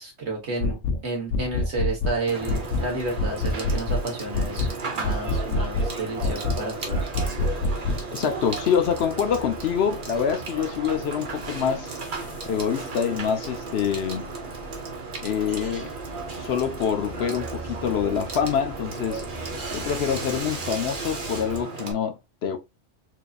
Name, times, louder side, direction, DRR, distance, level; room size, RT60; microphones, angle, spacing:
voice 1, 0.0-7.0, right 2 dB, 65° right, 1.8 m, -31 dB
sound 1, 0.6-1.0 1.3-2.2 2.5-2.9 3.2-4.0 4.3-4.7 5.0-5.9 6.2-6.6 6.9-8.0, left 2 dB, 90° left, 1.0 m, -25 dB
Water / Water tap faucet / Sink (filling or washing), 2.3-21.9, right 4 dB, 45° right, 1.0 m, -35 dB
sound 2, 2.4-21.6, right 1 dB, 15° left, 0.9 m, -43 dB
voice 2, 8.1-12.0 12.5-14.3 15.2-15.9 16.4-19.2 19.7-22.6, left 7 dB, 65° left, 0.8 m, -26 dB
4.6 x 2.6 x 2.4 m
omnidirectional pair, 1.2 m